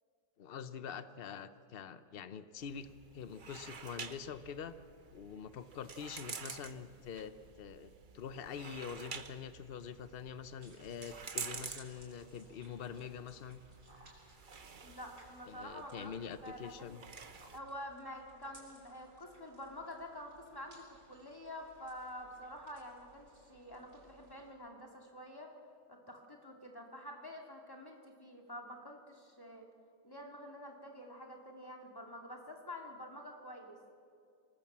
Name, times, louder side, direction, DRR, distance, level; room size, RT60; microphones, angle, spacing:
voice 1, 0.4-4.8 5.1-13.6 15.5-17.0, left 7 dB, 55° left, 12 dB, 0.6 m, -45 dB
sound 1, 2.6-17.6, right 5 dB, 40° right, 0.8 m, -50 dB
sound 2, 10.6-24.5, right 2 dB, 75° right, 5.8 m, -62 dB
voice 2, 14.8-16.1 16.4-17.0 17.5-25.5 25.9-29.7 30.0-33.9, left 1 dB, 10° left, 1 dB, 2.4 m, -48 dB
26.0 x 19.5 x 7.5 m, 2.3 s
omnidirectional pair, 2.0 m